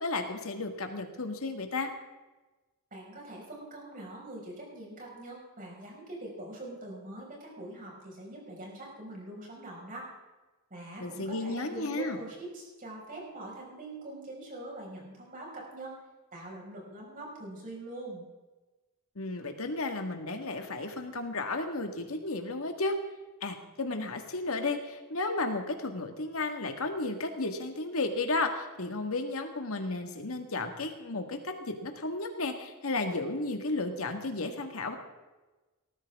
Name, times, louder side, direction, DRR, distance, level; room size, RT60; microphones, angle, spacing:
voice 1, 0.0-1.9 11.0-12.2 19.2-23.0 23.4-34.9, left 2 dB, 70° left, 5 dB, 1.8 m, -33 dB
voice 2, 2.9-10.1 10.7-16.0 16.3-18.2, right 1 dB, 40° right, -2 dB, 5.5 m, -43 dB
19.0 x 13.5 x 3.6 m, 1.2 s
head